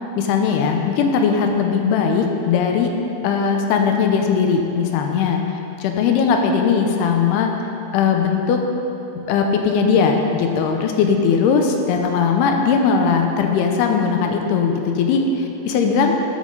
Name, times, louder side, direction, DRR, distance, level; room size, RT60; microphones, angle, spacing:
voice 1, 0.2-2.9 3.2-5.4 5.8-7.5 7.9-8.6 9.3-15.2 15.7-16.1, left 6 dB, 85° left, 3 dB, 2.7 m, -19 dB
12.5 x 5.6 x 3.9 m, 2.9 s
omnidirectional pair, 4.6 m